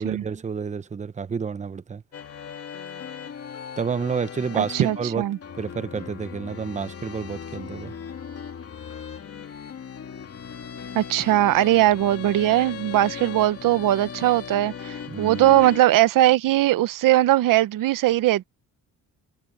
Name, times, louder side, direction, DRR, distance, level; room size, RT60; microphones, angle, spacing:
voice 1, 0.0-2.0 3.8-5.3 5.6-7.9 15.1-15.5, right 6 dB, 20° right, 0.8 m, -29 dB
sound 1, 2.1-15.8, left 7 dB, 45° left, 3.0 m, -38 dB
voice 2, 4.5-5.4 10.9-18.5, right 14 dB, 80° right, 0.9 m, -20 dB
cardioid pair, 120°, 32 cm